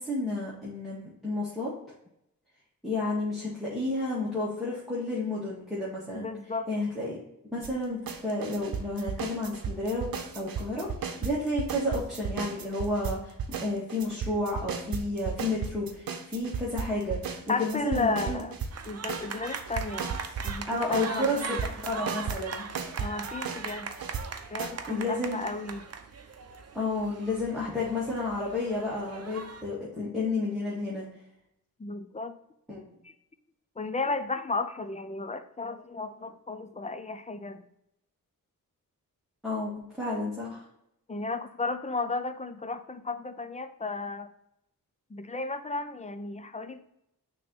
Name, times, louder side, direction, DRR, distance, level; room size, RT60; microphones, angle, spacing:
voice 1, 0.0-1.7 2.8-6.2 6.7-7.2 7.5-10.1 10.3-10.9 11.2-17.2 17.6-18.4 20.7-21.4 21.8-22.6 24.9-25.4 26.7-31.0 32.7-32.9 39.4-40.6, left 2 dB, ahead, -7 dB, 1.7 m, -31 dB
voice 2, 6.1-6.7 17.5-18.6 18.9-21.6 23.0-23.9 24.5-25.9 31.8-32.3 33.0-33.1 33.8-37.7 41.1-44.3 45.1-46.9, left 3 dB, 20° left, 10 dB, 0.4 m, -34 dB
sound 1, 7.6-7.7 8.1-13.1 13.4-24.2 24.6-24.7, right 6 dB, 80° right, 0.8 m, -35 dB
sound 2, 18.7-29.6, right 5 dB, 45° right, 0.7 m, -40 dB
6.3 x 3.0 x 5.2 m, 0.80 s
cardioid pair, 80°, 35 cm